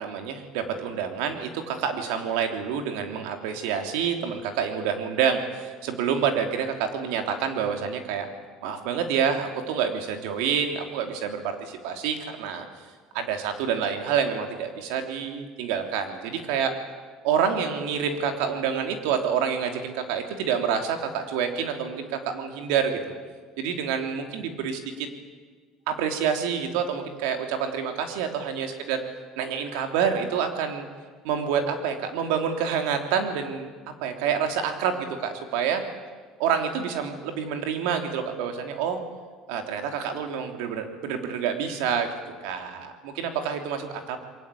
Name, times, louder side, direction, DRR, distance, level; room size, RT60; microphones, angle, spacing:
voice 1, 0.0-8.3 8.6-12.6 13.1-16.7 17.2-23.0 23.6-25.1 25.9-29.0 29.4-30.9 31.2-33.7 34.0-35.8 36.4-39.0 39.5-42.1 42.4-44.2, right 7 dB, 90° right, 5 dB, 3.2 m, -27 dB
28.0 x 22.5 x 8.5 m, 1.5 s
cardioid pair, 180°, 0 cm